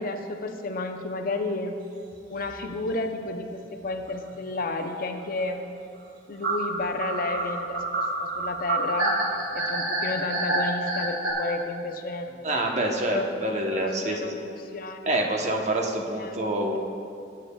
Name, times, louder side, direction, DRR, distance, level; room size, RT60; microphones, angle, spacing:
voice 1, 0.0-1.8 2.3-5.7 6.3-9.1 9.5-12.3 13.0-15.1 16.2-16.4, left 2 dB, 50° left, 6 dB, 0.6 m, -32 dB
sound 1, 2.1-2.4 2.7-2.8 3.1-3.2 4.1-4.3 6.4-11.3, right 2 dB, 80° right, 1.9 m, -27 dB
voice 2, 12.4-14.3 15.0-16.8, right 1 dB, 40° right, 1 dB, 1.0 m, -26 dB
17.0 x 8.5 x 2.3 m, 2.5 s
head